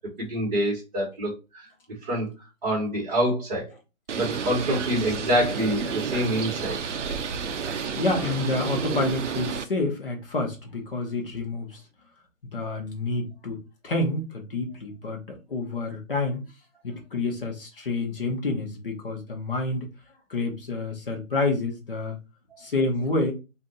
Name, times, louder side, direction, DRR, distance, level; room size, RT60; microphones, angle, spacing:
voice 1, 0.2-1.6 2.0-2.3 2.6-3.7 4.1-6.8 22.5-22.6, equal, 35° right, 1.1 m, -26 dB
Bird, 4.1-9.6, right 6 dB, 60° right, 0.5 m, -30 dB
voice 2, 8.0-11.8 12.5-16.4 16.8-19.9 20.3-22.2 22.6-23.3, left 2 dB, 40° left, 0.8 m, -28 dB
2.6 x 2.4 x 3.9 m
hypercardioid pair, 165°, 42 cm